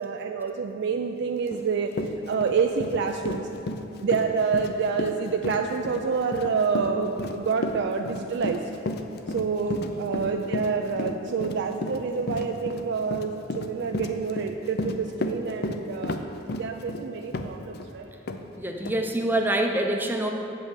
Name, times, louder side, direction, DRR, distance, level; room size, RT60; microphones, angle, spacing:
voice 1, 0.0-1.9 2.3-3.4 4.0-8.6 9.3-16.2 16.6-18.1, right 5 dB, 60° right, 4 dB, 0.4 m, -27 dB
Run, 1.5-1.6 1.9-17.9 18.3-18.4 18.8-19.0, left 2 dB, 55° left, 0.5 m, -32 dB
voice 2, 18.6-20.3, right 1 dB, 10° right, 3 dB, 0.6 m, -25 dB
7.7 x 5.3 x 7.2 m, 2.9 s
head